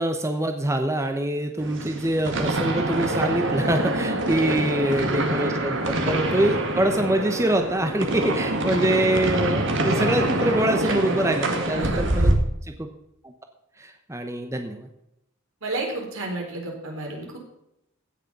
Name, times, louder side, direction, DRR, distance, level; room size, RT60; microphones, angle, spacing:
voice 1, 0.0-12.3 12.7-12.9 13.2-13.3 13.8-14.9, right 1 dB, 15° right, 6 dB, 0.9 m, -25 dB
sound 1, 1.6-12.3, right 1 dB, 60° right, 1.9 m, -25 dB
voice 2, 4.0-4.6 10.8-11.0 11.4-12.0 15.6-17.4, right 2 dB, 75° right, 0 dB, 4.2 m, -32 dB
16.0 x 6.7 x 5.4 m, 0.82 s
head